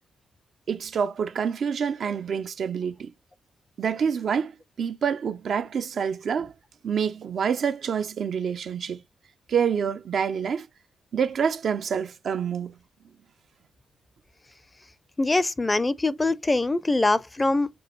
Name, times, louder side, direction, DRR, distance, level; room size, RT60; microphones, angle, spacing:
voice 1, 0.7-3.1 3.8-4.5 4.8-6.5 6.8-9.0 9.5-10.7 11.1-12.7, right 7 dB, 60° right, 0.3 m, -27 dB
voice 2, 15.2-17.8, left 2 dB, 25° left, 0.4 m, -23 dB
6.0 x 2.3 x 3.0 m
hypercardioid pair, 45°, 0 cm